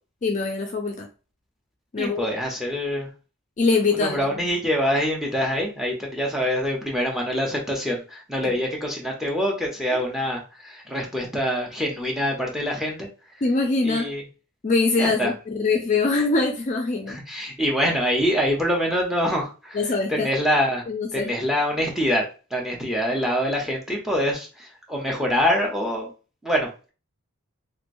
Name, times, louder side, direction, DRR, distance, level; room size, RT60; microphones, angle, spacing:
voice 1, 0.2-1.1 1.9-2.3 3.6-4.3 8.4-8.5 9.9-10.0 13.4-14.1 14.6-17.2 19.7-20.3 20.9-21.3, left 3 dB, 35° left, 2 dB, 0.3 m, -23 dB
voice 2, 2.0-3.1 4.0-13.1 13.8-14.2 15.0-15.3 17.1-19.8 20.1-20.9 21.1-26.1 26.4-26.9, equal, ahead, 0 dB, 0.7 m, -25 dB
3.0 x 2.9 x 2.6 m, 0.34 s
head